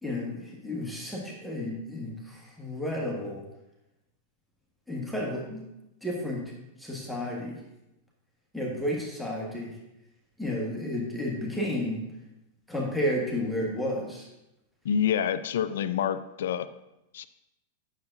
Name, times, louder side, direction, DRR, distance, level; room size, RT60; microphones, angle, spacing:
voice 1, 0.0-3.4 4.9-5.7 6.0-6.4 6.8-7.6 8.5-9.7 10.4-12.1 12.7-14.3, left 1 dB, ahead, -3 dB, 1.4 m, -32 dB
voice 2, 14.8-16.7 17.1-17.3, left 8 dB, 65° left, 14 dB, 0.4 m, -27 dB
9.4 x 6.5 x 2.6 m, 0.91 s
figure-of-eight pair, 95°, 0 cm